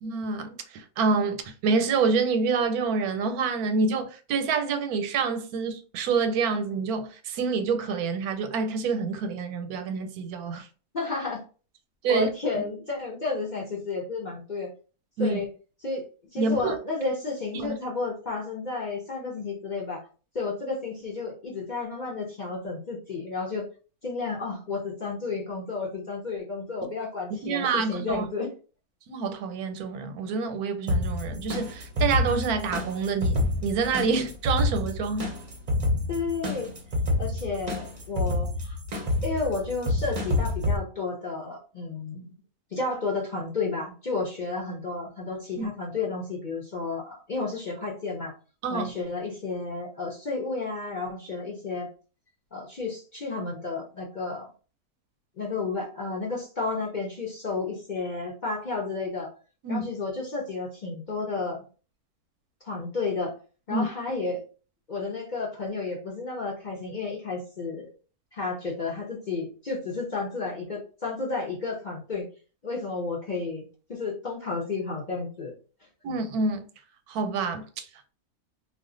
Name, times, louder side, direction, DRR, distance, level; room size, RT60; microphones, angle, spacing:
voice 1, 0.0-10.7 12.0-12.3 12.5-12.6 15.2-15.4 16.4-16.7 17.5-17.8 27.4-28.3 29.1-35.3 45.6-45.7 48.6-48.9 59.6-59.9 63.7-63.9 76.0-76.6 77.1-77.8, right 4 dB, 90° right, 1.1 m, -27 dB
voice 2, 10.9-11.4 12.1-14.7 15.2-15.5 15.8-16.0 16.3-20.0 20.3-23.7 24.0-28.5 36.1-36.7 37.2-38.8 39.2-42.3 42.7-48.3 48.7-51.9 52.5-54.5 55.4-59.3 59.7-61.6 62.6-63.3 63.7-64.4 64.9-67.9 68.3-72.3 72.6-75.5, left 3 dB, 45° left, 0.6 m, -32 dB
sound 1, 30.9-40.8, left 2 dB, 40° right, 0.6 m, -28 dB
2.4 x 2.3 x 3.7 m
omnidirectional pair, 1.6 m